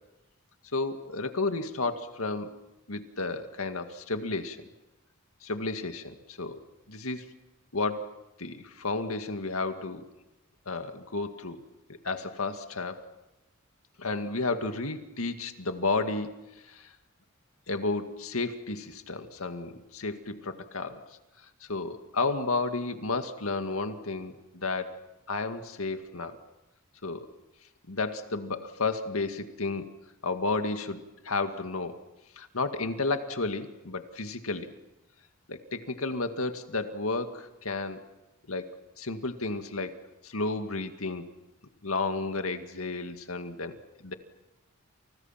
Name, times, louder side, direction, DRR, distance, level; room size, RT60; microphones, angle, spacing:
voice 1, 0.7-2.5 2.9-4.7 5.4-6.6 6.9-7.3 7.7-10.1 10.7-11.6 12.0-13.1 14.0-16.9 17.7-21.0 21.4-25.0 25.3-26.4 27.0-27.3 27.9-29.9 30.2-32.0 32.4-34.7 35.5-38.0 38.5-38.7 39.0-39.9 40.2-41.3 41.8-44.1, left 3 dB, 85° left, 7 dB, 2.1 m, -32 dB
29.5 x 29.0 x 5.9 m, 1.0 s
head